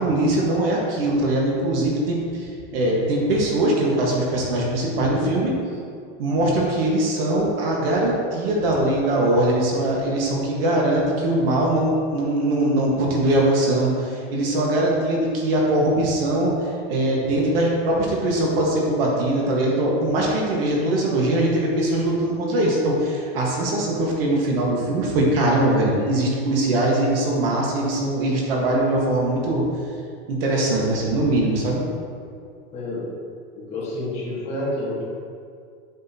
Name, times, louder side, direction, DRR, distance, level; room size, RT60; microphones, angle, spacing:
voice 1, 0.0-5.5 6.2-29.7 30.3-31.8, right 1 dB, 65° right, -2 dB, 1.7 m, -21 dB
voice 2, 32.7-33.2 33.7-35.2, left 1 dB, 20° left, -7 dB, 1.6 m, -29 dB
7.8 x 6.2 x 2.9 m, 2.3 s
supercardioid pair, 180°, 30 cm